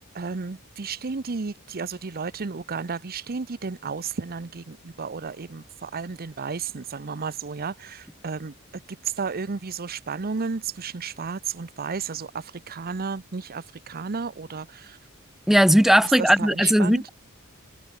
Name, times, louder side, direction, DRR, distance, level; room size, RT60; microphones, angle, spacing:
voice 1, 0.1-8.5 9.0-15.0 16.2-17.0, right 5 dB, 45° right, 0.7 m, -33 dB
voice 2, 15.5-17.1, equal, ahead, 0.6 m, -18 dB
head